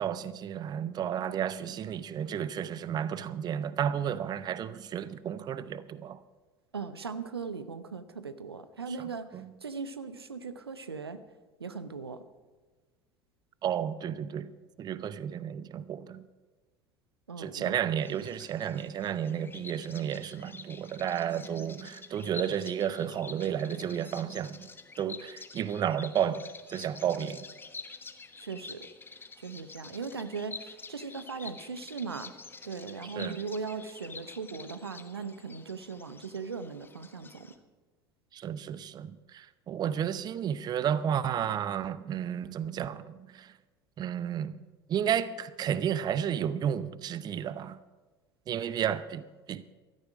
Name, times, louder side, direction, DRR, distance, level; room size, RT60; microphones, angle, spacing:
voice 1, 0.0-6.2 9.3-9.5 13.6-14.5 14.8-16.3 17.4-24.7 25.0-27.4 33.2-33.4 38.3-43.5 44.0-44.6 44.9-47.8 48.5-49.6, right 9 dB, 30° right, 0.7 m, -32 dB
voice 2, 6.7-11.2 11.6-12.2 17.3-17.8 28.4-28.9 29.4-32.3 32.6-37.5, right 5 dB, 80° right, 0.8 m, -39 dB
Bird vocalization bird call bird song, 18.0-37.6, left 4 dB, 15° left, 1.2 m, -48 dB
16.0 x 13.0 x 4.9 m
figure-of-eight pair, 70°, 13 cm